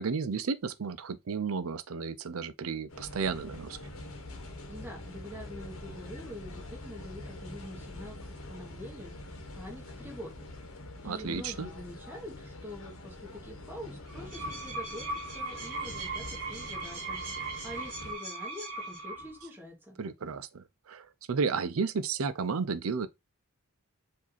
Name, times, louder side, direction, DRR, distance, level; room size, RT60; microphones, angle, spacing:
voice 1, 0.0-3.8 11.0-11.7 20.0-23.1, right 5 dB, 80° right, 0.5 m, -33 dB
sound 1, 2.9-18.1, left 1 dB, 75° left, 1.0 m, -45 dB
voice 2, 4.7-10.4 11.0-20.0, left 1 dB, 10° right, 1.4 m, -45 dB
sound 2, 14.1-19.5, right 3 dB, 40° right, 2.2 m, -38 dB
4.9 x 2.7 x 4.0 m
head